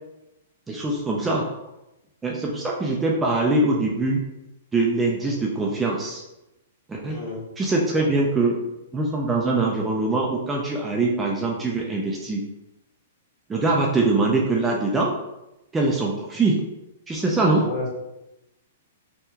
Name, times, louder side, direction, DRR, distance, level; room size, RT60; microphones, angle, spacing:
voice 1, 0.7-1.5 2.2-4.2 4.7-6.2 6.9-7.2 7.6-8.6 8.9-12.4 13.5-15.1 15.7-16.6 17.1-17.7, right 2 dB, 10° right, -1 dB, 0.4 m, -23 dB
voice 2, 7.0-7.4 17.5-17.9, left 3 dB, 40° left, -5 dB, 1.3 m, -32 dB
3.6 x 2.2 x 2.8 m, 0.94 s
hypercardioid pair, 140°, 0 cm